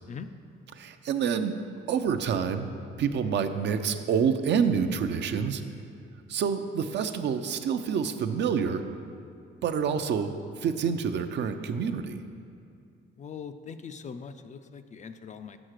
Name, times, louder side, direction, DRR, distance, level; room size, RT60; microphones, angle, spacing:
voice 1, 0.8-1.5 1.9-5.6 6.3-8.8 9.6-12.2, right 6 dB, 65° right, 8 dB, 0.5 m, -27 dB
voice 2, 13.2-15.6, left 6 dB, 35° left, 10 dB, 0.4 m, -41 dB
6.1 x 5.7 x 6.4 m, 2.4 s
cardioid pair, 90°, 20 cm